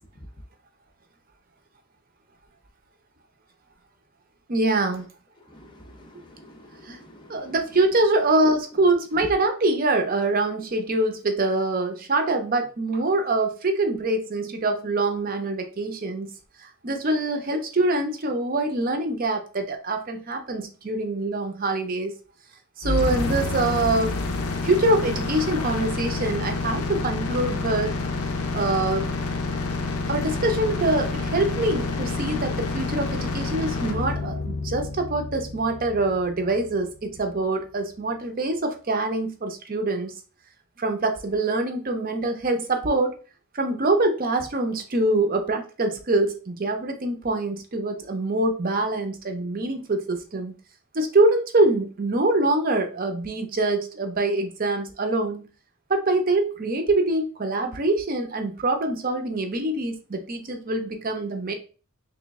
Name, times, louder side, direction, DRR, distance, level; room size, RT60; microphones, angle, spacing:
voice 1, 4.5-5.0 6.9-7.0 7.3-16.3 16.8-22.1 22.8-24.1 24.6-27.9 28.5-29.1 30.1-40.1 40.8-43.1 43.5-50.5 50.9-55.5 55.9-61.5, right 2 dB, 40° right, 5 dB, 0.6 m, -24 dB
voice 2, 5.5-7.5, equal, 20° left, 2 dB, 0.5 m, -49 dB
sound 1, 22.8-36.8, left 3 dB, 75° left, 0.6 m, -28 dB
3.3 x 3.0 x 3.4 m, 0.37 s
head